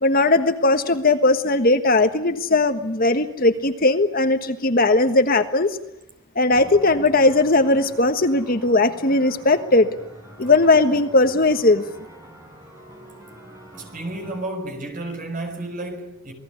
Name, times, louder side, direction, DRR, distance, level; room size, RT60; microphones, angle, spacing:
voice 1, 0.0-5.8 6.3-9.9 10.4-11.8, left 2 dB, 40° left, 1.4 m, -18 dB
sound 1, 6.5-14.4, equal, 15° right, 5.9 m, -44 dB
voice 2, 13.8-16.3, right 2 dB, 40° right, 6.0 m, -31 dB
27.5 x 20.0 x 9.5 m
head